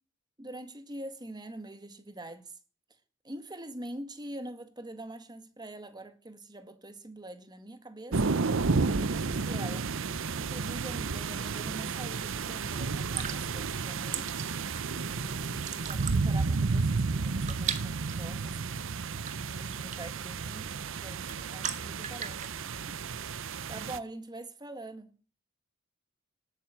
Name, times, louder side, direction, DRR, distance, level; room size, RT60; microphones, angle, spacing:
voice 1, 0.4-2.5 3.2-8.4 8.7-9.9 10.4-14.5 15.1-18.9 19.5-23.0 23.3-25.2, right 1 dB, 20° right, 1.9 m, -44 dB
sound 1, 8.1-24.0, right 4 dB, 65° right, 0.8 m, -32 dB
sound 2, 13.1-22.5, right 8 dB, 35° right, 1.9 m, -41 dB
19.0 x 9.3 x 7.7 m
head